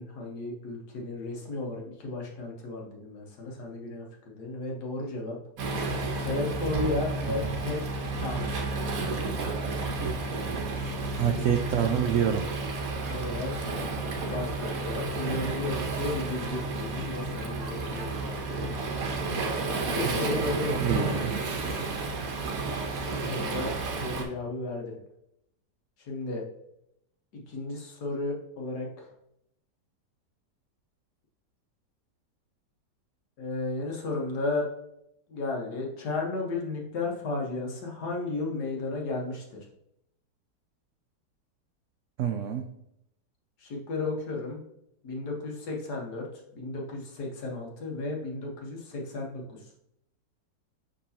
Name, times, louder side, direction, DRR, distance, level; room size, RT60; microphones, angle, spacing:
voice 1, 0.0-5.4 6.2-7.8 8.2-8.5 11.2-11.4 13.1-13.5 14.3-18.1 18.5-18.7 19.9-21.3 23.0-23.7 24.0-25.0 26.1-26.4 27.5-29.1 33.4-34.7 35.3-39.6 43.6-44.6 45.0-46.3 46.5-49.6, left 2 dB, 65° left, 0 dB, 1.7 m, -34 dB
Waves surf, 5.6-24.2, right 3 dB, 60° right, 1.3 m, -31 dB
voice 2, 11.2-12.5 20.8-21.3 42.2-42.7, right 9 dB, 85° right, 6 dB, 0.6 m, -27 dB
6.3 x 5.4 x 2.8 m, 0.79 s
omnidirectional pair, 1.9 m